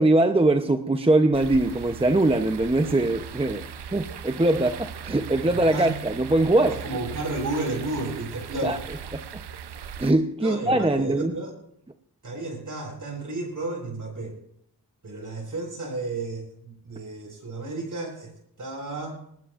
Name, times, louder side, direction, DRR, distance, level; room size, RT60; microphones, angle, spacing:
voice 1, 0.0-6.8 8.6-8.8 9.1-9.4 10.0-11.3, right 2 dB, 15° right, 0.8 m, -22 dB
sound 1, 1.3-10.1, right 8 dB, 80° right, 0.8 m, -39 dB
voice 2, 6.8-8.8 10.4-11.5 12.2-14.4 15.0-18.3 18.6-19.2, right 2 dB, 50° right, 7.1 m, -32 dB
20.0 x 19.5 x 2.6 m
wide cardioid pair, 90°, 40 cm